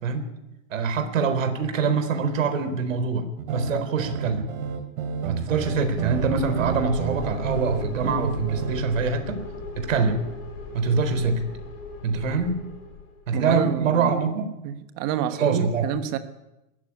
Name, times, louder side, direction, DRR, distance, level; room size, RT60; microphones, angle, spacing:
voice 1, 0.7-4.5 5.2-9.4 9.8-10.2 10.7-11.4 12.0-12.6 13.3-14.5 15.4-15.9, right 5 dB, 60° right, 9 dB, 4.2 m, -24 dB
sound 1, 3.4-8.8, right 7 dB, 35° right, 2.5 m, -31 dB
sound 2, 5.4-13.2, left 4 dB, 40° left, 7.0 m, -38 dB
voice 2, 13.3-14.1 14.6-16.2, right 9 dB, 20° right, 11 dB, 1.1 m, -28 dB
20.5 x 15.0 x 10.0 m, 0.95 s
hypercardioid pair, 165°, 44 cm